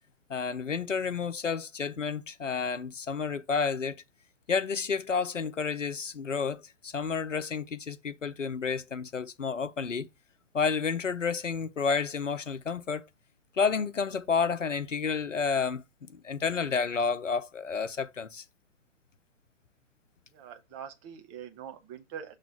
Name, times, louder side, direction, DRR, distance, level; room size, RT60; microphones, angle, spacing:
voice 1, 0.3-4.0 4.5-10.1 10.5-13.0 13.5-15.8 16.1-18.4, left 5 dB, 80° left, 0.7 m, -30 dB
voice 2, 20.3-22.4, right 8 dB, 20° right, 0.8 m, -43 dB
6.0 x 3.2 x 5.3 m
figure-of-eight pair, 115°, 37 cm